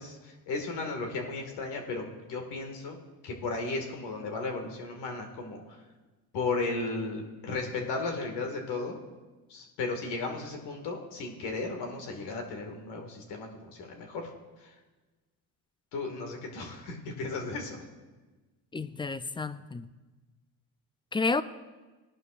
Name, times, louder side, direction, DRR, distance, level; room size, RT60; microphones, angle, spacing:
voice 1, 0.0-3.0 3.2-5.8 6.3-9.0 9.5-14.3 14.6-14.7 15.9-17.8, left 3 dB, 80° left, 3 dB, 2.0 m, -35 dB
voice 2, 18.7-19.9 21.1-21.4, left 3 dB, 15° left, 13 dB, 0.3 m, -30 dB
17.5 x 11.0 x 2.5 m, 1.2 s
supercardioid pair, 80°, 40 cm